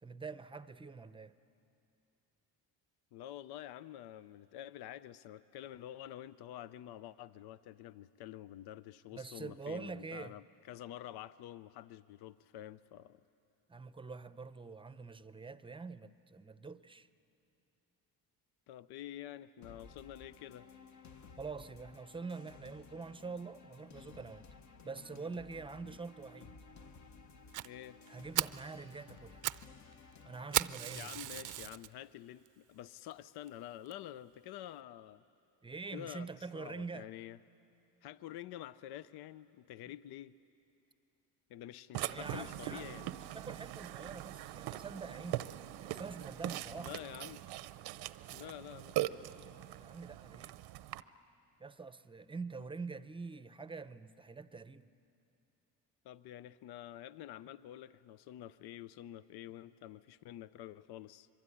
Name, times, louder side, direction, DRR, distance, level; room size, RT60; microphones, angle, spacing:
voice 1, 0.0-1.3 9.1-10.3 13.7-17.1 21.4-24.5 24.8-26.5 28.1-29.4 30.2-31.1 35.6-37.1 42.1-42.9 43.3-45.5 45.8-46.9 49.8-50.6 51.6-54.8, right 4 dB, 15° right, 0.6 m, -45 dB
voice 2, 3.1-13.2 18.7-20.7 25.8-26.0 27.6-28.0 30.9-35.2 35.9-37.4 38.0-40.4 41.5-43.1 46.8-47.4 48.3-49.0 56.0-61.3, left 12 dB, 85° left, 0.6 m, -48 dB
sound 1, 19.6-31.0, left 5 dB, 50° left, 1.3 m, -56 dB
Fire, 27.5-27.7 28.1-28.2 28.3-28.6 29.2-29.7 29.9-30.0 30.5-31.9 32.5-32.6 33.1-33.2 33.5-33.6 33.9-34.0, right 14 dB, 55° right, 0.5 m, -35 dB
Burping eructation, 41.9-51.0, right 14 dB, 90° right, 0.8 m, -41 dB
25.0 x 23.5 x 9.9 m
cardioid pair, 110°, 37 cm